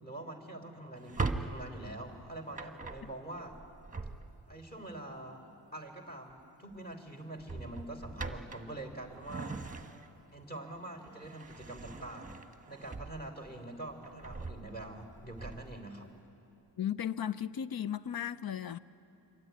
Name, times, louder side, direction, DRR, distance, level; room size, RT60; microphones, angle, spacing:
voice 1, 0.0-3.6 4.5-5.4 5.7-9.6 10.3-12.4 12.7-16.1, right 1 dB, 20° left, 3.3 m, -45 dB
Drawer open or close, 0.9-4.6 6.1-6.4 6.7-6.9 7.4-10.3 10.7-13.5 13.9-15.8, right 3 dB, 20° right, 1.2 m, -41 dB
voice 2, 16.8-18.8, left 9 dB, 55° left, 0.7 m, -35 dB
25.5 x 23.0 x 9.4 m
wide cardioid pair, 130°, 43 cm